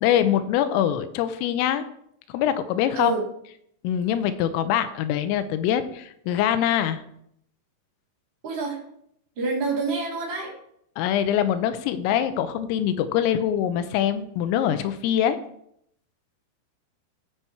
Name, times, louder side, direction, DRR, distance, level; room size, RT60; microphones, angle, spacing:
voice 1, 0.0-1.8 2.3-3.1 3.8-7.0 11.0-15.4, left 10 dB, 85° left, 11 dB, 3.3 m, -23 dB
voice 2, 8.4-8.8 9.4-10.5, right 3 dB, 35° right, -5 dB, 2.2 m, -27 dB
13.5 x 6.1 x 4.5 m, 0.72 s
omnidirectional pair, 5.9 m